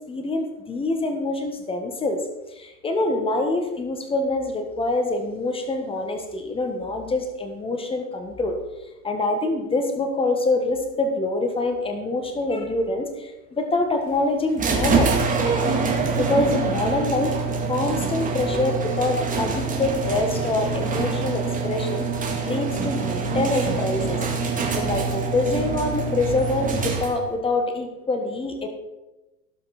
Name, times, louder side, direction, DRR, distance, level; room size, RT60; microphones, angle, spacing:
voice 1, 0.1-2.2 2.5-8.6 9.0-15.1 15.4-15.7 16.1-17.3 17.7-22.1 22.4-24.2 24.7-28.7, left 2 dB, 10° left, 5 dB, 1.6 m, -25 dB
sound 1, 14.6-27.4, right 4 dB, 15° right, 2.1 m, -25 dB
17.5 x 5.9 x 4.4 m, 1.0 s
hypercardioid pair, 125°, 49 cm